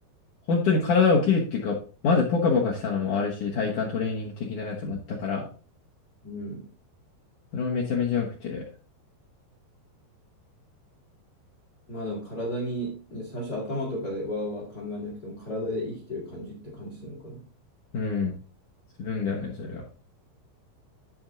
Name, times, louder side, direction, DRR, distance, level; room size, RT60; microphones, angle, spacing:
voice 1, 0.5-1.8 2.0-5.5 7.5-8.6 17.9-18.4 19.0-19.8, left 5 dB, 70° left, 1.9 m, -25 dB
voice 2, 6.2-6.7 11.9-17.5, left 1 dB, 55° left, 1.0 m, -34 dB
12.5 x 4.4 x 3.9 m
omnidirectional pair, 5.3 m